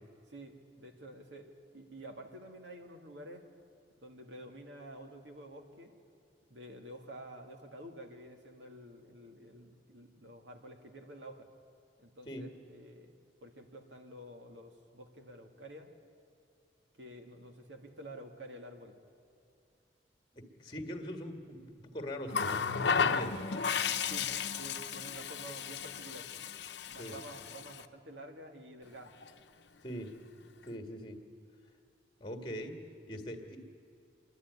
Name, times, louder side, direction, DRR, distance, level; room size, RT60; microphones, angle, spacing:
voice 1, 0.3-3.4 4.0-5.9 6.5-11.5 12.0-13.1 13.4-15.9 17.0-19.0 24.0-24.3 24.6-26.3 26.9-29.2 33.4-33.5, right 1 dB, 85° right, 4 dB, 2.1 m, -50 dB
voice 2, 20.3-23.6 27.0-27.2 29.8-30.1 30.7-31.2 32.2-32.8 33.1-33.6, equal, 25° left, 5 dB, 1.9 m, -42 dB
Water tap faucet, 22.3-27.8 29.1-29.3, left 6 dB, 75° left, 0.8 m, -34 dB
27.0 x 11.5 x 9.6 m, 2.6 s
head